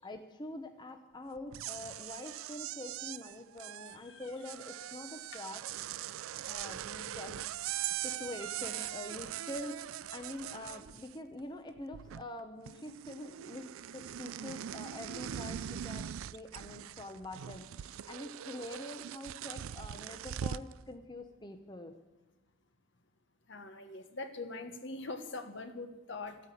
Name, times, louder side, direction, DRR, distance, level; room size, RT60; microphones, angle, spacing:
voice 1, 0.0-5.6 6.5-7.4 8.0-21.9, left 1 dB, 20° left, 6 dB, 0.8 m, -45 dB
sound 1, 1.4-11.4 11.7-12.4 12.7-20.7, right 10 dB, 85° right, 0.4 m, -41 dB
voice 2, 3.9-4.3 4.8-4.9 23.5-26.4, left 3 dB, 60° left, 8 dB, 1.3 m, -43 dB
13.5 x 9.4 x 8.4 m, 1.1 s
head